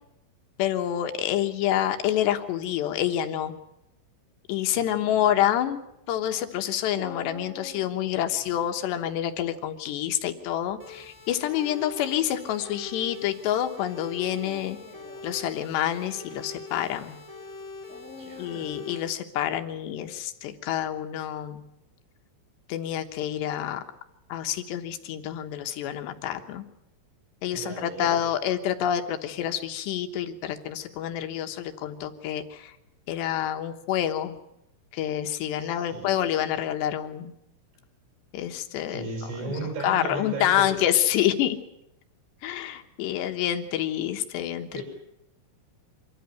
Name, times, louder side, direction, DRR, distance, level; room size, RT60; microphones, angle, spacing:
voice 1, 0.6-3.5 4.5-5.8 6.1-14.8 15.2-17.2 18.4-21.6 22.7-23.8 24.3-26.7 27.4-32.7 33.1-34.4 34.9-37.3 38.3-39.1 39.8-41.6 42.4-44.8, left 11 dB, 70° left, 7 dB, 3.1 m, -27 dB
voice 2, 4.7-5.4 18.2-18.7 27.5-28.2 35.6-36.2 38.9-40.7 44.7-44.8, right 3 dB, 50° right, 1 dB, 8.6 m, -36 dB
Dog, 6.9-8.6 10.6-11.1 11.9-12.0 14.2-15.4 17.9-18.9, left 2 dB, 5° left, 0.8 m, -45 dB
sound 1, 10.8-19.0, left 3 dB, 10° right, 2.3 m, -43 dB
25.5 x 13.5 x 9.2 m, 0.84 s
omnidirectional pair, 5.8 m